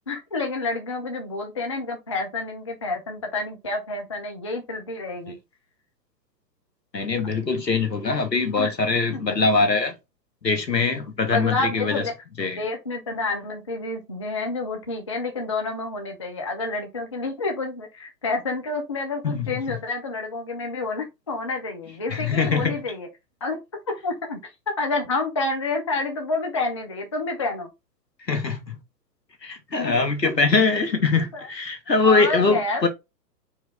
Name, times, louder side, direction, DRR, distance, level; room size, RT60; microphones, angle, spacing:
voice 1, 0.1-5.4 8.6-8.7 9.1-9.2 11.2-12.1 12.6-23.1 23.4-23.6 24.0-24.5 24.8-27.7 29.8-30.0 30.4-30.5 31.3-31.5 32.0-32.9, left 3 dB, 20° left, 0.4 m, -29 dB
voice 2, 6.9-9.9 10.4-12.0 12.4-12.6 19.2-19.6 22.1-22.7 28.3-28.8 29.4-32.9, left 4 dB, 80° left, 1.5 m, -22 dB
4.5 x 3.1 x 3.6 m
figure-of-eight pair, 115°, 50 cm